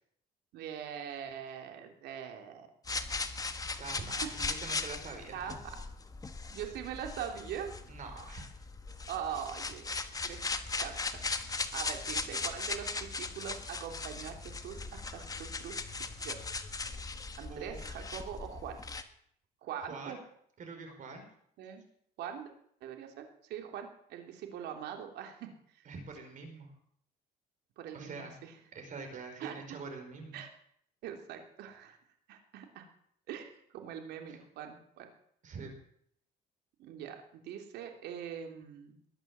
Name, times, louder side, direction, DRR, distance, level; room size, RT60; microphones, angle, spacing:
voice 1, 0.5-2.7 4.0-4.6 5.3-5.6 6.5-7.7 9.1-9.9 10.2-10.4 10.8-11.2 11.5-16.4 17.4-18.8 19.6-20.2 21.6-21.8 22.2-22.5 22.8-25.5 25.8-25.9 27.8-28.5 29.4-29.5 30.3-30.5 31.0-32.0 32.3-32.9 33.3-35.1 36.8-38.9, right 9 dB, 80° right, 4 dB, 3.1 m, -42 dB
sound 1, 2.8-19.0, left 3 dB, 20° left, 1.4 m, -38 dB
voice 2, 3.8-5.5 7.8-8.5 17.5-17.8 19.9-20.2 20.6-21.3 25.9-26.7 27.9-28.4 28.7-30.4 34.3-34.4 35.4-35.7, right 4 dB, 50° right, 4 dB, 5.2 m, -45 dB
21.5 x 8.8 x 7.4 m, 0.68 s
cardioid pair, 110°, 17 cm